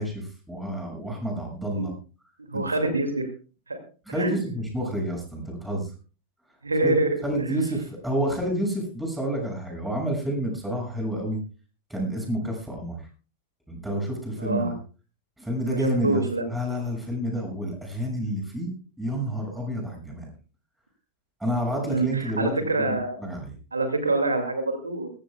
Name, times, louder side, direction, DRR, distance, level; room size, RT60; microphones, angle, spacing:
voice 1, 0.0-1.9 2.5-2.6 4.1-5.9 6.8-7.0 7.2-11.4 11.9-13.0 13.7-14.7 15.4-18.7 19.0-20.3 21.4-23.5, equal, 5° right, 0 dB, 6.6 m, -29 dB
voice 2, 2.5-3.3 3.7-3.8 4.1-4.3 6.6-7.1 7.4-7.6 14.4-14.7 15.6-16.5 21.8-23.2 23.7-25.1, right 2 dB, 80° right, 6 dB, 2.4 m, -26 dB
21.5 x 15.0 x 2.3 m, 0.36 s
figure-of-eight pair, 90°, 0 cm